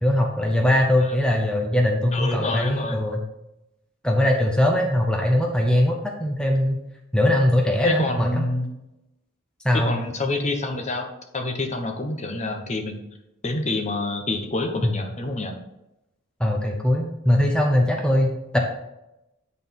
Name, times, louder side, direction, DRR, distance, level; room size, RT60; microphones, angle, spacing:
voice 1, 0.0-3.2 4.0-6.8 7.1-8.4 9.6-10.0 14.8-14.9 16.4-18.6, left 1 dB, 5° left, 0 dB, 0.7 m, -21 dB
voice 2, 2.1-3.0 7.8-8.7 9.7-13.0 13.4-15.6, left 2 dB, 35° left, 4 dB, 1.0 m, -27 dB
9.1 x 4.2 x 5.4 m, 0.91 s
head